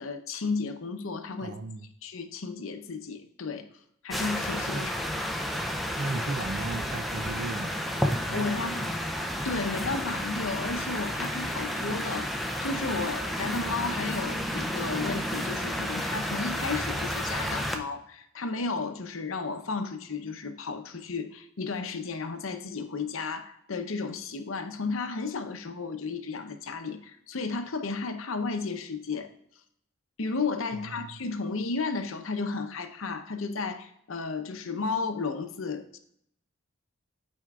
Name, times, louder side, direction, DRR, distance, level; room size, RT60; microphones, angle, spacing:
voice 1, 0.0-1.5 2.0-3.7 4.0-4.9 8.3-8.9 9.4-12.3 12.6-29.3 30.2-36.0, left 4 dB, 70° left, 7 dB, 0.7 m, -33 dB
voice 2, 1.4-1.9 4.7-4.9 6.0-7.8 8.3-8.9 30.7-31.2, right 3 dB, 55° right, 11 dB, 0.4 m, -36 dB
sound 1, 4.1-17.8, equal, ahead, 0.5 m, -31 dB
12.5 x 4.5 x 2.4 m, 0.74 s
head